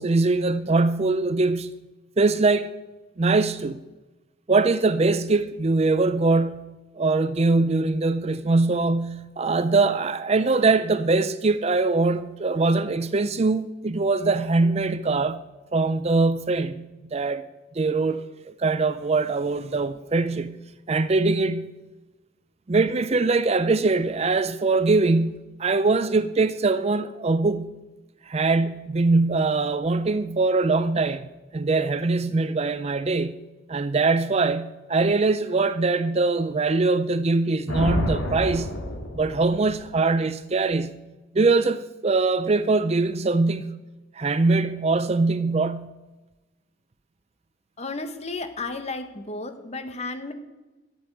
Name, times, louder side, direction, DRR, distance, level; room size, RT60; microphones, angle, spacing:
voice 1, 0.0-1.7 2.2-2.7 3.2-3.8 4.5-15.4 15.7-17.4 17.8-18.3 18.6-20.6 20.9-21.7 22.7-27.8 28.3-33.4 33.7-38.7 39.2-41.0 41.3-43.7 44.2-45.9, right 3 dB, 30° right, 0.5 m, -22 dB
Thunder, 37.7-39.9, left 1 dB, 80° left, 3.0 m, -28 dB
voice 2, 47.8-50.3, left 3 dB, 35° left, 1.3 m, -33 dB
12.5 x 7.7 x 9.2 m
head